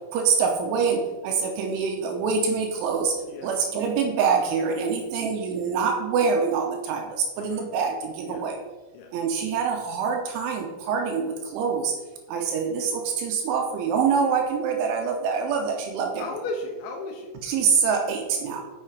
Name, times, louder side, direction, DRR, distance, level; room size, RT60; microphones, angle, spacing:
voice 1, 0.1-3.2 3.4-8.6 9.1-11.9 12.3-16.3 17.4-18.6, right 5 dB, 80° right, 3 dB, 3.0 m, -25 dB
voice 2, 3.3-3.6 7.4-7.7 8.3-8.4 8.9-9.1 16.2-17.3, left 2 dB, 75° left, 2 dB, 2.8 m, -35 dB
7.7 x 6.3 x 4.8 m, 1.2 s
omnidirectional pair, 5.9 m